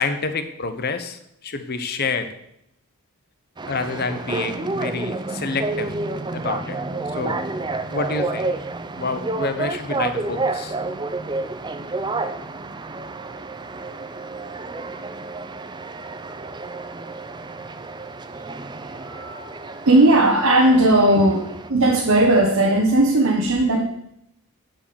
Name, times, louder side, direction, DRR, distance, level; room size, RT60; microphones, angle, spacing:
voice 1, 0.0-2.3 3.7-5.9 6.3-6.8 7.1-7.4 7.9-8.5 8.9-10.7, left 4 dB, 45° left, 9 dB, 1.0 m, -27 dB
sound 1, 3.6-21.7, right 3 dB, 20° right, 0.5 m, -30 dB
voice 2, 19.0-23.8, right 1 dB, 75° right, 1 dB, 1.3 m, -17 dB
10.0 x 5.2 x 7.0 m, 0.75 s
head